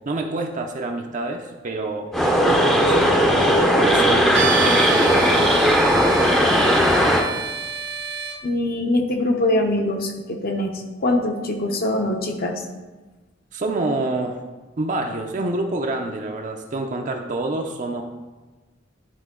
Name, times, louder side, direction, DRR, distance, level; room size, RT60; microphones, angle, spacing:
voice 1, 0.1-5.5 13.5-14.4 14.8-18.0, right 2 dB, 40° right, 3 dB, 0.5 m, -27 dB
sound 1, 2.1-7.3, equal, 5° left, 0.6 m, -17 dB
sound 2, 4.3-8.4, right 6 dB, 75° right, 0.8 m, -28 dB
voice 2, 8.4-12.5, left 1 dB, 50° left, 3 dB, 0.8 m, -23 dB
10.5 x 3.8 x 3.7 m, 1.2 s
head